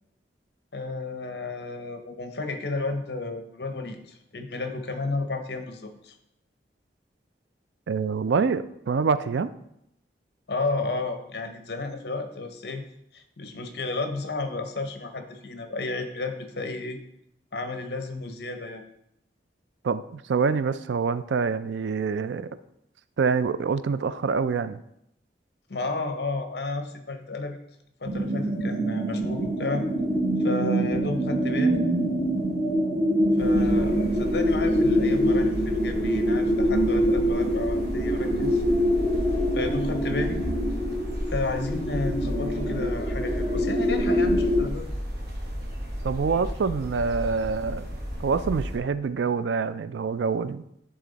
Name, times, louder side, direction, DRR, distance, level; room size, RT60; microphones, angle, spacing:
voice 1, 0.7-6.1 10.5-12.8 13.1-17.0 17.5-18.8 25.7-27.6 28.0-29.8 30.4-31.8 33.4-38.6 39.5-40.4 41.3-44.9, left 3 dB, 60° left, 7 dB, 0.8 m, -32 dB
voice 2, 7.9-9.5 19.8-22.5 23.2-24.8 46.0-47.9 48.2-50.7, right 5 dB, 80° right, 14 dB, 0.4 m, -26 dB
sound 1, 28.0-44.7, equal, 25° left, 1.6 m, -25 dB
sound 2, 33.4-48.8, equal, 60° right, 1.5 m, -33 dB
10.5 x 3.8 x 3.9 m, 0.78 s
head